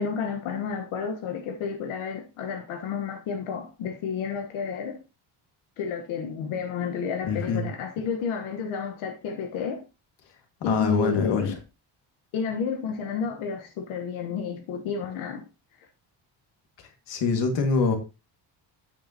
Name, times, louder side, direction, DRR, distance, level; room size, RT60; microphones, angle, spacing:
voice 1, 0.0-5.0 5.8-9.8 10.6-11.6 12.3-15.4, left 6 dB, 90° left, 1.4 m, -31 dB
voice 2, 7.3-7.7 10.7-11.5 17.1-18.0, left 5 dB, 60° left, 2.0 m, -24 dB
8.8 x 8.6 x 2.9 m
cardioid pair, 165°, 47 cm